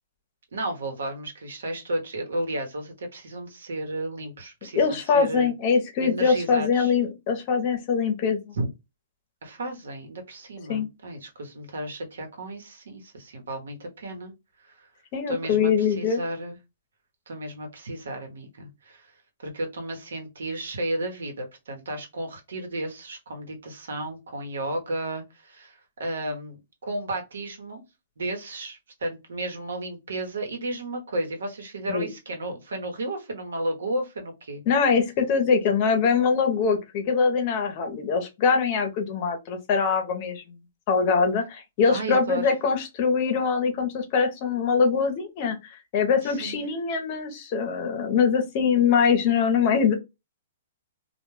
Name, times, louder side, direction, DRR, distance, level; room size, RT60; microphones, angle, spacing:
voice 1, 0.5-5.5 6.0-6.9 8.5-8.7 9.4-14.3 14.7-14.8 15.3-16.6 17.3-19.1 19.4-26.6 26.9-27.8 28.2-34.6 41.9-42.5 46.2-46.6, right 1 dB, 85° right, 0.9 m, -33 dB
voice 2, 4.8-8.6 10.7-10.9 15.1-16.2 31.9-32.1 34.7-40.4 40.9-49.9, left 5 dB, 40° left, 0.7 m, -23 dB
2.2 x 2.2 x 3.1 m
hypercardioid pair, 145°, 0 cm